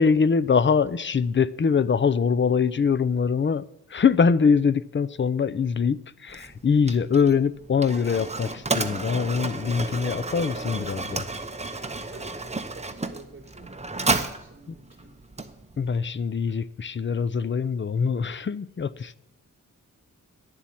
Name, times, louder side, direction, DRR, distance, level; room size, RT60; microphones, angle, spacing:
voice 1, 0.0-3.6 3.9-11.2 14.7-14.8 15.8-19.2, left 6 dB, 35° left, 0.5 m, -23 dB
Mechanisms, 6.3-16.0, right 3 dB, 20° right, 0.9 m, -32 dB
voice 2, 12.1-15.1, right 3 dB, 35° right, 4.2 m, -48 dB
11.0 x 7.4 x 8.5 m
wide cardioid pair, 100°, 33 cm